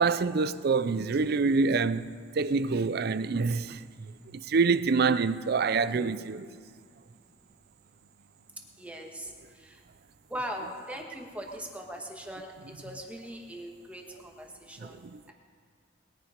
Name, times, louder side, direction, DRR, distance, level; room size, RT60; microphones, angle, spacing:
voice 1, 0.0-6.5 14.8-15.3, right 4 dB, 55° right, 0.4 m, -27 dB
voice 2, 8.8-9.3 9.6-9.8 10.3-12.5 12.8-15.0, equal, 5° right, 1.6 m, -40 dB
20.5 x 9.9 x 5.2 m
head